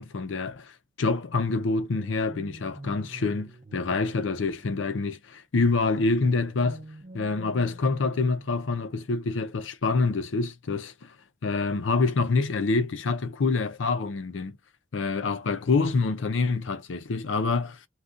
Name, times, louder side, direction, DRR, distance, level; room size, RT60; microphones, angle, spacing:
voice 1, 0.0-6.8 7.1-11.1 11.4-14.6 14.9-17.8, left 3 dB, 80° left, 0.6 m, -26 dB
sound 1, 1.9-5.0 6.2-9.1, right 2 dB, 40° right, 0.7 m, -46 dB
2.5 x 2.3 x 3.6 m
head